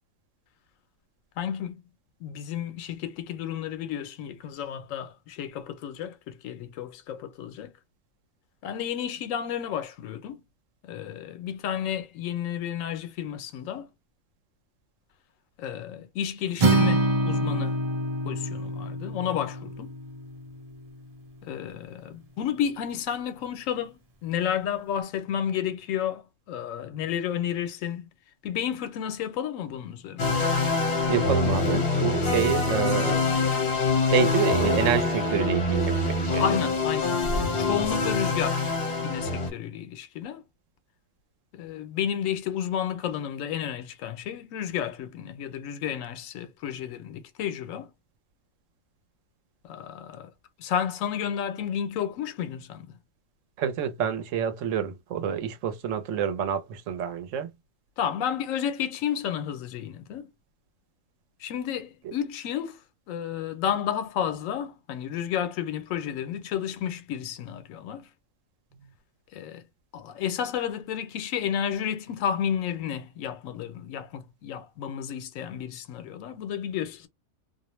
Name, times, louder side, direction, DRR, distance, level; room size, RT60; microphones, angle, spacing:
voice 1, 1.4-1.8 2.2-7.7 8.6-10.4 10.8-13.9 15.6-17.8 18.3-19.9 21.4-28.1 28.4-30.3 36.3-38.7 39.0-40.4 41.5-47.9 49.6-50.3 50.6-52.9 58.0-60.3 61.4-62.8 63.1-68.1 69.3-69.6 69.9-77.1, left 9 dB, 90° left, 1.0 m, -31 dB
Acoustic guitar, 16.6-20.8, right 2 dB, 40° right, 0.6 m, -26 dB
sound 1, 30.2-39.5, left 3 dB, 55° left, 1.0 m, -25 dB
voice 2, 31.1-33.3 34.0-36.5 53.6-57.5 62.0-62.1, right 8 dB, 75° right, 0.9 m, -28 dB
2.4 x 2.0 x 2.9 m
omnidirectional pair, 1.3 m